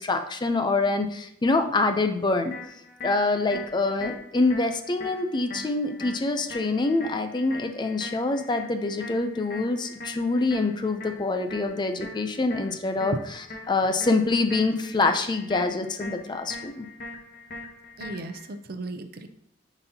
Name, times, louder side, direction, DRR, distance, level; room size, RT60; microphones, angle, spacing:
voice 1, 0.0-2.5 3.0-13.1 13.7-16.9, left 3 dB, 25° left, 7 dB, 0.5 m, -25 dB
sound 1, 2.5-18.5, left 2 dB, 50° left, 1.0 m, -42 dB
voice 2, 18.0-19.3, right 2 dB, 55° right, 8 dB, 0.6 m, -35 dB
9.3 x 4.0 x 2.8 m, 0.72 s
head